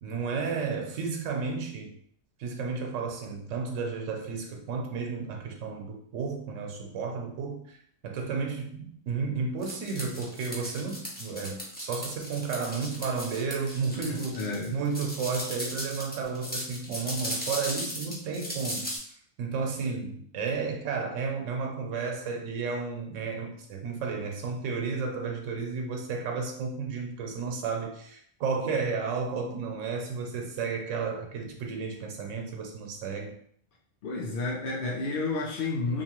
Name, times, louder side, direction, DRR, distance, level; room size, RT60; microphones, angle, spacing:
voice 1, 0.0-1.9 2.4-7.8 8.0-14.4 14.7-18.9 19.4-33.3, right 5 dB, 85° right, 2 dB, 0.9 m, -32 dB
sound 1, 9.6-19.0, equal, 15° left, 0.3 m, -37 dB
voice 2, 14.0-14.7 34.0-36.0, left 3 dB, 60° left, -3 dB, 0.6 m, -31 dB
2.7 x 2.4 x 2.9 m, 0.64 s
omnidirectional pair, 1.3 m